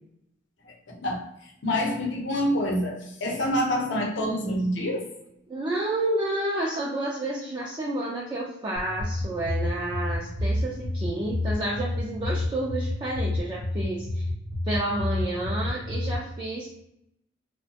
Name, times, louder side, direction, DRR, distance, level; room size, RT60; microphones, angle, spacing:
voice 1, 0.9-5.1, equal, 65° left, 0 dB, 0.7 m, -27 dB
voice 2, 5.5-14.2 14.7-16.7, right 1 dB, 25° right, -4 dB, 0.4 m, -30 dB
sound 1, 8.8-16.2, left 2 dB, 90° right, 0.7 m, -30 dB
2.7 x 2.1 x 2.7 m, 0.81 s
head